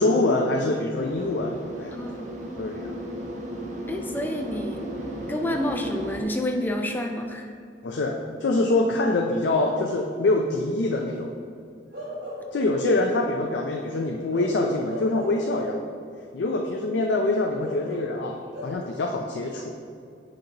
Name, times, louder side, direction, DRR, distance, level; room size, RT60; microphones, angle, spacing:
voice 1, 0.0-1.9 2.6-3.0 7.8-11.3 12.5-15.8 16.3-19.9, left 2 dB, 85° left, 1 dB, 0.4 m, -25 dB
sound 1, 0.9-6.2, equal, 45° right, 0.8 m, -35 dB
voice 2, 1.9-2.2 3.9-4.9 5.3-7.5, left 1 dB, 10° left, 2 dB, 0.4 m, -29 dB
Bark / Livestock farm animals working animals, 11.9-12.9 14.3-15.8 17.6-18.7, left 1 dB, 80° right, 1.6 m, -37 dB
7.8 x 5.2 x 2.9 m, 2.4 s
head